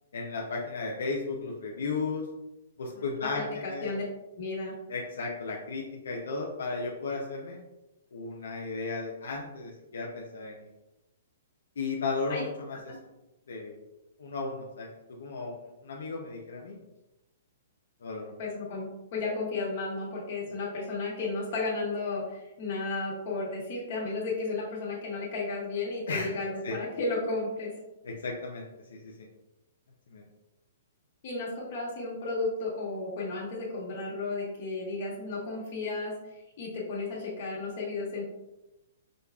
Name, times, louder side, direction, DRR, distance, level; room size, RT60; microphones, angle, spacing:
voice 1, 0.1-2.2 2.8-3.4 3.7-3.9 4.9-7.6 8.1-10.7 11.8-12.8 13.5-13.7 14.2-14.9 15.2-16.8 18.0-18.4 26.1-26.3 26.6-26.7 28.0-28.6 28.9-29.1 30.1-30.2, left 4 dB, 85° left, -1 dB, 0.6 m, -34 dB
voice 2, 2.9-4.0 4.4-4.7 12.3-12.4 12.9-13.0 18.4-18.9 19.1-27.7 31.2-36.1 36.6-38.2, left 3 dB, 50° left, -4 dB, 1.3 m, -33 dB
5.0 x 2.4 x 2.3 m, 0.95 s
hypercardioid pair, 155°, 0 cm